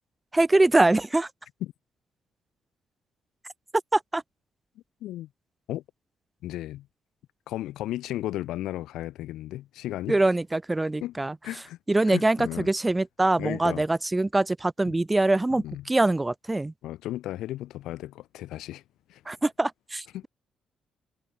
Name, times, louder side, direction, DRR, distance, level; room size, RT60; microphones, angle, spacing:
voice 1, 0.3-1.3 3.9-4.2 10.1-11.3 11.9-16.7 19.3-20.3, right 2 dB, 20° right, 1.3 m, -23 dB
voice 2, 6.4-6.9 7.5-10.2 11.0-11.1 11.4-11.8 12.0-12.7 13.4-13.9 14.9-15.0 15.5-15.9 16.8-18.8 19.1-19.2 20.1-20.2, left 14 dB, 85° left, 1.8 m, -34 dB
supercardioid pair, 65°, 0 cm